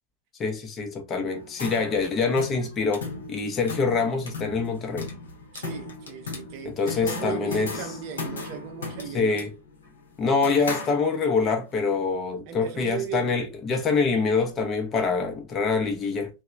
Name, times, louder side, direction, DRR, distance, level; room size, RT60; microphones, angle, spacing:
voice 1, 0.4-5.1 6.7-7.7 9.1-9.5 10.2-16.3, left 4 dB, 25° left, 0.6 m, -25 dB
sound 1, 1.3-11.5, left 3 dB, 65° left, 0.8 m, -37 dB
voice 2, 5.5-9.5 12.5-13.4, right 8 dB, 45° right, 0.5 m, -36 dB
2.9 x 2.1 x 2.4 m
figure-of-eight pair, 90°, 0 cm